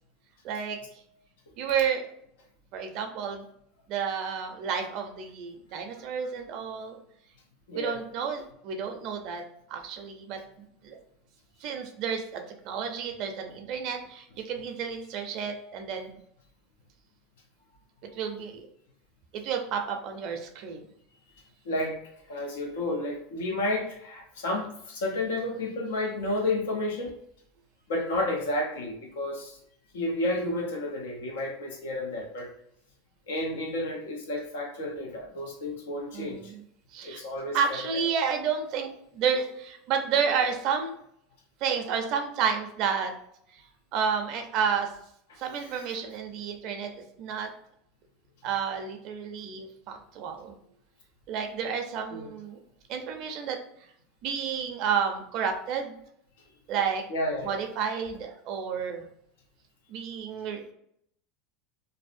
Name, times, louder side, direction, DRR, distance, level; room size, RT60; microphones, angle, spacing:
voice 1, 0.4-0.8 1.6-2.1 2.7-3.4 3.9-7.0 7.7-9.4 9.7-10.4 10.8-11.0 11.6-16.2 18.1-18.7 19.3-20.8 36.1-36.6 36.9-37.2 37.5-41.0 41.6-43.1 43.5-43.6 43.9-44.9 45.4-46.9 47.2-47.5 48.4-50.6 51.3-52.6 52.9-53.6 54.2-55.9 56.7-57.0 57.4-59.1 59.9-60.7, right 6 dB, 55° right, 5 dB, 0.4 m, -31 dB
voice 2, 7.7-8.0 21.6-22.0 22.3-27.2 27.9-29.6 29.9-32.5 33.3-36.5 37.0-38.0 45.3-45.4 52.1-52.3 57.1-57.5, left 1 dB, 90° left, 1 dB, 0.6 m, -31 dB
2.6 x 2.0 x 2.5 m, 0.71 s
supercardioid pair, 120°, 0 cm